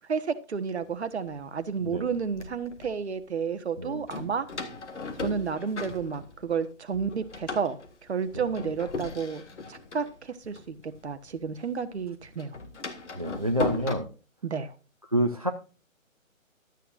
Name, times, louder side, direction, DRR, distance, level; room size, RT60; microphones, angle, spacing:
voice 1, 0.1-4.5 5.2-7.8 8.1-9.4 9.7-10.7 11.0-12.6 14.4-14.7, right 6 dB, 50° right, 1.3 m, -31 dB
Door, 0.9-1.0 1.8-2.9 4.1-6.7 6.9-11.5 11.7-13.9, left 3 dB, 55° left, 2.0 m, -37 dB
voice 2, 1.8-2.2 3.8-4.1 8.3-8.5 13.2-14.1 15.0-15.5, equal, 30° right, 0.5 m, -28 dB
13.0 x 9.1 x 2.5 m
hypercardioid pair, 165°, 41 cm